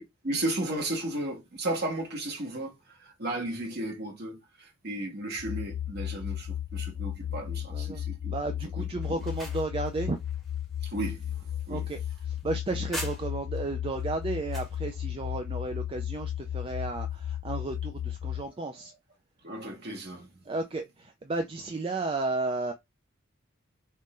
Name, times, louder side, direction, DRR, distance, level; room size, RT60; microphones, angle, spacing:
voice 1, 0.0-8.3 8.8-9.2 10.8-11.9 18.4-18.5 18.7-18.9 19.4-20.3, right 1 dB, 50° right, 1.2 m, -35 dB
sound 1, 5.4-18.4, left 10 dB, 65° left, 0.3 m, -34 dB
voice 2, 7.6-8.0 8.3-10.2 11.7-18.9 20.5-22.7, right 3 dB, 25° right, 0.3 m, -33 dB
sound 2, 9.0-13.6 14.0-14.8, equal, ahead, 1.1 m, -44 dB
3.6 x 2.5 x 4.1 m
head